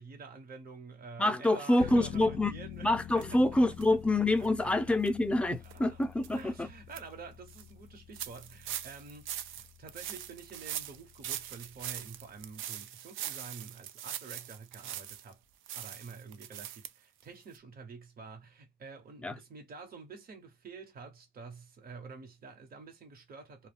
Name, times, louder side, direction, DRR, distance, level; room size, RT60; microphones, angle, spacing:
voice 1, 0.0-3.4 5.6-6.0 6.3-15.4 15.7-23.7, right 4 dB, 50° right, 1.1 m, -48 dB
voice 2, 1.2-2.5 2.8-6.7 19.2-19.3, left 1 dB, 5° left, 0.5 m, -27 dB
sound 1, 1.8-12.6, left 11 dB, 80° left, 0.4 m, -48 dB
sound 2, 3.2-3.3 3.8-3.9 4.4-4.5 5.0-5.1 5.6-5.8 6.2-6.3 6.7-7.0 7.5-7.6 8.1-15.3 15.7-16.9 17.2-17.3 17.5-17.6, right 11 dB, 90° right, 0.4 m, -41 dB
2.3 x 2.2 x 3.3 m
cardioid pair, 90°, 20 cm